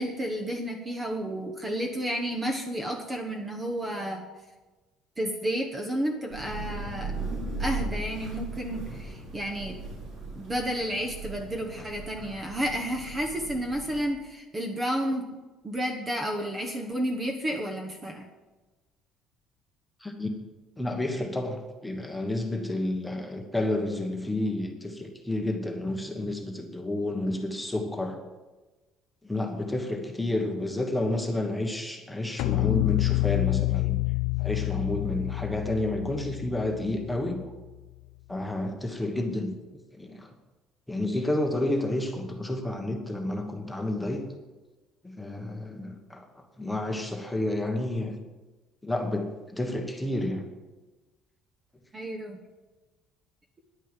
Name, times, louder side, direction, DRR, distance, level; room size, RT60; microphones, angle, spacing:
voice 1, 0.0-4.2 5.2-7.1 7.6-9.8 10.4-15.3 15.6-18.3 51.9-52.4, equal, 15° right, 3 dB, 1.0 m, -31 dB
Thunder / Rain, 6.3-14.0, right 3 dB, 60° right, 4.8 m, -37 dB
voice 2, 20.8-28.2 29.2-34.0 34.4-37.4 38.3-39.5 40.0-40.3 40.9-44.2 45.0-46.2 46.6-48.1 48.8-50.5, left 1 dB, 5° left, 3 dB, 1.2 m, -30 dB
sound 1, 32.4-37.6, left 26 dB, 90° left, 0.3 m, -28 dB
10.5 x 9.3 x 7.3 m, 1.2 s
cardioid pair, 180°, 0 cm